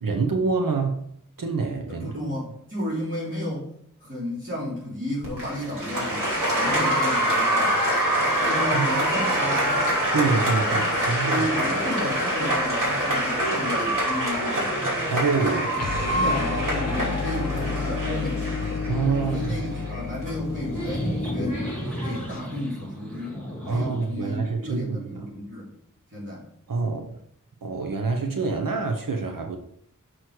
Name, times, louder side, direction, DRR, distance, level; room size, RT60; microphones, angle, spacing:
voice 1, 0.0-1.1 1.4-2.1 8.7-8.9 10.1-11.4 15.1-15.7 16.2-16.4 18.9-19.7 23.6-25.3 26.7-27.2 27.6-29.6, right 4 dB, 90° right, 4 dB, 0.9 m, -26 dB
voice 2, 1.9-3.7 4.0-6.3 6.5-7.8 8.4-10.0 10.6-14.7 16.1-18.8 19.3-21.6 22.0-25.7 26.1-26.5, left 1 dB, 35° right, -8 dB, 3.1 m, -33 dB
Applause, 5.2-22.4, right 1 dB, 70° right, 2.9 m, -25 dB
sound 1, 15.6-16.3 16.6-17.2 17.4-24.8, equal, 5° left, 2.8 m, -36 dB
sound 2, 15.7-21.8, left 5 dB, 50° left, 0.8 m, -31 dB
6.2 x 6.0 x 4.8 m, 0.68 s
wide cardioid pair, 45°, 32 cm